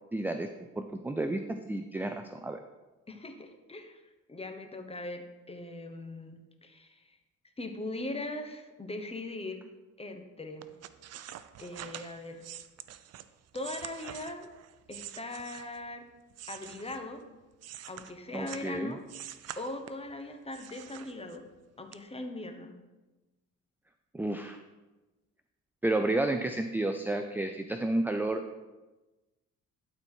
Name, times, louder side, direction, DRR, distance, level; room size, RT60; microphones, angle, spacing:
voice 1, 0.1-0.5 0.8-2.6 18.3-19.0 24.1-24.6 25.8-28.4, right 2 dB, 5° right, 6 dB, 0.4 m, -31 dB
voice 2, 3.1-4.0 4.3-7.2 7.6-9.6 10.0-10.7 11.6-12.4 13.5-14.5 14.9-16.0 16.5-17.2 17.9-19.1 19.6-21.4 21.8-22.7, left 2 dB, 20° left, 6 dB, 1.1 m, -40 dB
sound 1, 10.6-15.9 16.3-18.7 19.1-20.1 20.5-21.6 21.9-22.0, right 11 dB, 55° right, 0.5 m, -46 dB
12.0 x 4.3 x 4.5 m, 1.1 s
cardioid pair, 90°, 30 cm